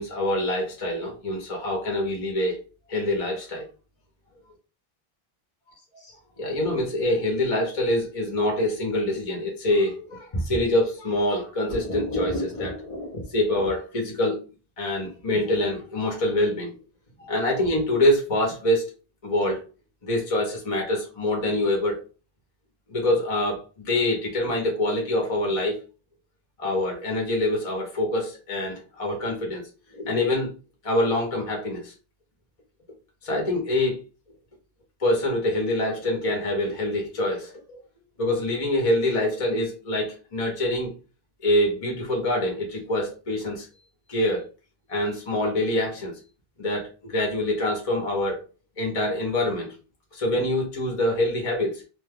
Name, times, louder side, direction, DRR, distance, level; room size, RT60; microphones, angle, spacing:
voice 1, 0.0-2.6 2.9-3.7 6.4-14.4 14.8-16.7 17.2-18.9 19.2-19.6 20.0-22.0 22.9-25.8 26.6-29.6 29.9-30.5 30.8-31.9 33.2-34.0 35.0-37.8 38.2-40.9 41.4-43.7 44.1-44.4 44.9-46.1 46.6-48.4 48.8-49.7 50.1-51.8, left 1 dB, 35° left, 0.8 m, -25 dB
2.6 x 2.2 x 3.4 m
omnidirectional pair, 1.0 m